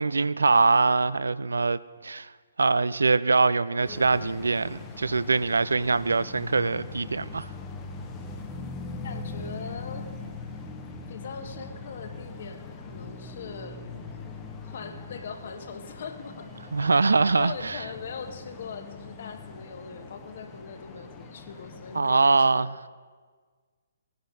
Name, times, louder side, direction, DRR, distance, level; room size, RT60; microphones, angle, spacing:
voice 1, 0.0-2.3 2.6-7.5 16.7-17.8 21.9-22.7, right 4 dB, 70° right, 0.3 m, -23 dB
sound 1, 3.8-22.0, left 3 dB, 20° left, 0.8 m, -41 dB
voice 2, 9.0-10.1 11.1-13.9 14.6-16.5 16.9-17.1 17.4-22.7, left 5 dB, 50° left, 1.0 m, -41 dB
17.5 x 10.0 x 2.7 m
figure-of-eight pair, 130°, 0 cm